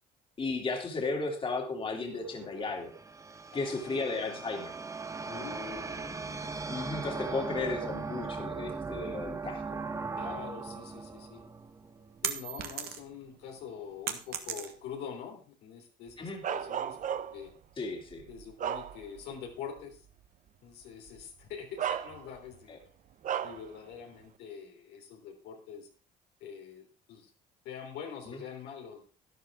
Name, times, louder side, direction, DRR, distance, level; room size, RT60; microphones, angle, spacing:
voice 1, 0.4-2.9 3.5-4.8 6.7-9.8 16.2-16.4 17.8-18.3 22.7-22.8 28.3-28.4, left 3 dB, 30° left, 2 dB, 2.5 m, -34 dB
sound 1, 2.2-12.5, right 4 dB, 20° right, 0.9 m, -39 dB
voice 2, 3.5-4.0 5.2-6.9 10.2-11.4 12.2-17.5 18.3-20.1 20.6-22.8 23.4-25.9 26.4-27.3 27.7-29.1, left 7 dB, 90° left, 1 dB, 3.5 m, -45 dB
sound 2, 11.4-13.2 13.6-15.1, right 9 dB, 65° right, 1.6 m, -36 dB
Bark, 16.4-17.5 18.1-19.4 19.8-20.0 21.1-21.2 21.8-22.6 23.2-23.7, right 9 dB, 50° right, 0.8 m, -35 dB
12.0 x 11.0 x 3.6 m, 0.37 s
cardioid pair, 110°, 17 cm